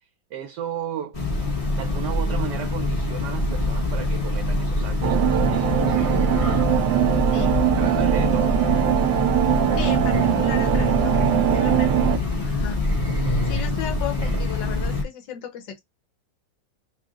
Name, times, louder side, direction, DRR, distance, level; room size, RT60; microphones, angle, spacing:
voice 1, 0.3-1.2 1.7-6.3 7.8-8.5 13.6-13.8, right 10 dB, 75° right, 1.2 m, -35 dB
Train, 1.1-15.0, left 2 dB, 25° left, 0.9 m, -24 dB
sound 1, 5.0-12.2, right 13 dB, 90° right, 1.3 m, -21 dB
voice 2, 9.8-12.1 12.4-12.8 13.4-15.8, left 9 dB, 80° left, 1.6 m, -35 dB
3.5 x 2.7 x 3.6 m
omnidirectional pair, 2.0 m